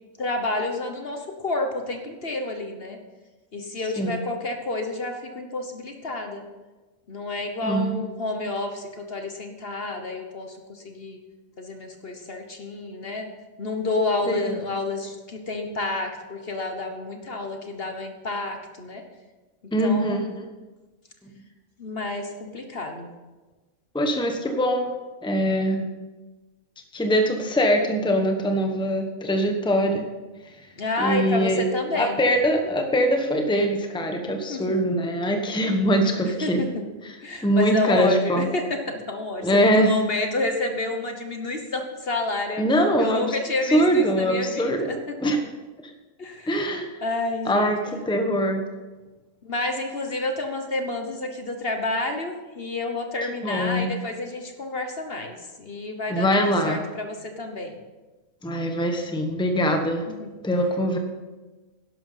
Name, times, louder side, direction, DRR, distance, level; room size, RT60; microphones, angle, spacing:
voice 1, 0.2-3.0 3.5-6.4 7.1-11.2 11.6-13.3 13.6-19.0 19.8-20.3 21.8-23.1 30.8-32.2 34.3-34.6 36.2-36.8 37.2-42.7 43.0-45.3 46.2-46.6 47.0-47.7 49.4-57.8 60.2-60.3, left 2 dB, 45° left, 5 dB, 1.3 m, -29 dB
voice 2, 7.6-8.0 14.3-14.6 19.7-20.5 23.9-24.9 25.2-25.9 26.9-30.1 31.0-31.6 31.9-36.6 37.4-38.5 39.4-39.9 42.6-43.4 43.7-44.9 45.2-45.4 46.5-46.9 47.4-48.6 53.4-53.9 56.1-56.8 58.4-60.0 60.4-61.0, equal, 5° left, 5 dB, 1.1 m, -22 dB
12.0 x 11.0 x 5.7 m, 1.2 s
omnidirectional pair, 1.4 m